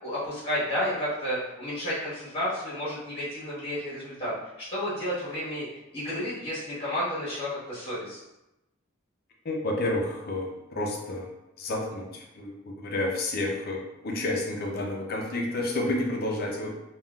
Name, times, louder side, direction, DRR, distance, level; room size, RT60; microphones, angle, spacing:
voice 1, 0.0-5.6 5.9-8.2, equal, 25° left, -9 dB, 1.2 m, -31 dB
voice 2, 9.4-11.3 11.6-16.7, left 2 dB, 50° left, 0 dB, 0.5 m, -30 dB
3.5 x 2.3 x 2.3 m, 0.94 s
head